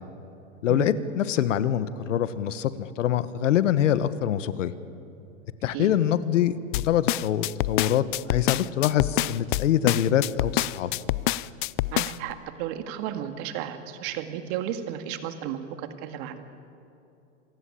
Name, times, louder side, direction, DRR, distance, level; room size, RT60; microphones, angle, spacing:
voice 1, 0.6-4.7 5.6-10.9, left 10 dB, 80° left, 14 dB, 1.4 m, -24 dB
sound 1, 6.7-12.3, left 17 dB, 45° left, 0.5 m, -26 dB
voice 2, 11.9-16.4, right 10 dB, 40° right, 8 dB, 2.0 m, -33 dB
27.0 x 16.5 x 8.6 m, 2.7 s
supercardioid pair, 145°, 37 cm